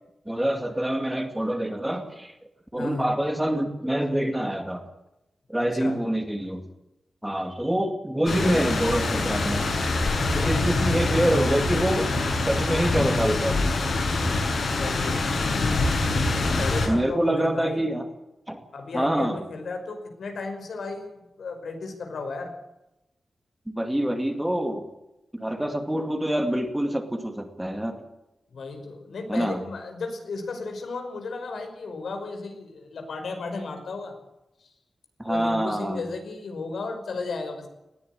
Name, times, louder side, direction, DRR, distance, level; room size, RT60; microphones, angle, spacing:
voice 1, 0.3-2.3 2.7-4.8 5.5-6.6 7.2-9.7 10.3-12.2 12.5-13.6 16.9-18.1 18.5-18.6 18.9-19.4 23.7-24.9 25.3-28.0 29.3-29.6 35.2-36.0, right 1 dB, 5° right, 6 dB, 2.3 m, -26 dB
voice 2, 2.8-3.1 5.7-6.0 14.8-15.8 16.3-17.8 18.7-22.5 28.5-34.1 34.6-34.7 35.3-37.7, left 3 dB, 85° left, 5 dB, 5.4 m, -34 dB
sound 1, 8.3-16.9, left 2 dB, 65° left, 7.2 m, -25 dB
20.5 x 15.5 x 9.1 m, 0.92 s
wide cardioid pair, 160°, 0 cm